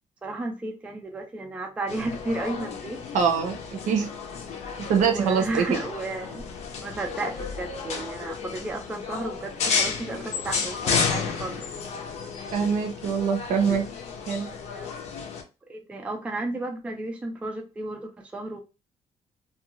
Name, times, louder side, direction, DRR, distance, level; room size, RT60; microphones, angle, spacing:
voice 1, 0.2-3.0 5.0-6.5 6.8-11.7 14.4-14.9 15.7-18.6, right 2 dB, 10° right, 0.4 m, -33 dB
sound 1, 1.9-15.4, left 5 dB, 55° left, 0.6 m, -32 dB
voice 2, 3.1-4.1 4.9-5.7 12.5-13.8 14.3-14.5, right 6 dB, 70° right, 0.7 m, -24 dB
2.4 x 2.3 x 3.0 m
cardioid pair, 175°, 13 cm